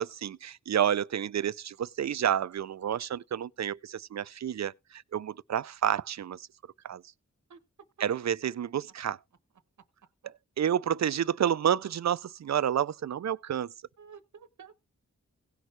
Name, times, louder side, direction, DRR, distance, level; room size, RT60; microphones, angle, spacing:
voice 1, 0.0-6.5 6.8-7.0 8.0-9.2 10.6-13.7, right 9 dB, 65° right, 0.5 m, -29 dB
voice 2, 14.0-14.8, right 6 dB, 90° right, 1.0 m, -51 dB
17.5 x 6.1 x 3.2 m
wide cardioid pair, 85°, 29 cm